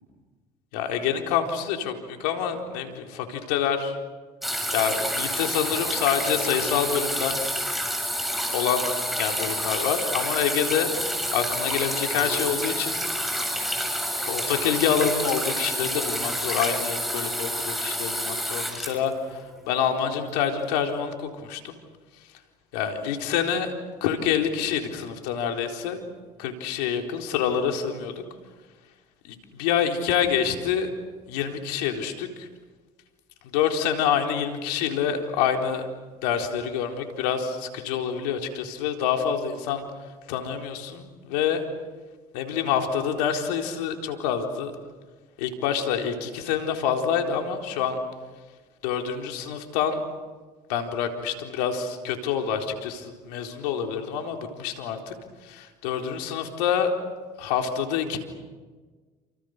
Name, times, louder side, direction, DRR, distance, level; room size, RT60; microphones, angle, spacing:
voice 1, 0.7-4.0 4.7-7.4 8.5-8.9 9.2-10.9 11.3-13.0 14.3-21.8 22.7-23.7 24.0-26.1 26.4-28.2 29.2-30.9 31.3-32.5 33.4-35.8 36.2-39.8 40.3-41.6 42.3-44.7 45.4-48.0 48.8-50.0 50.7-55.1 55.4-56.9 57.4-58.2, left 8 dB, 85° left, 4 dB, 4.1 m, -27 dB
sound 1, 4.4-19.8 20.7-20.8, equal, ahead, 7.1 m, -29 dB
30.0 x 27.5 x 6.7 m, 1.3 s
supercardioid pair, 70°, 20 cm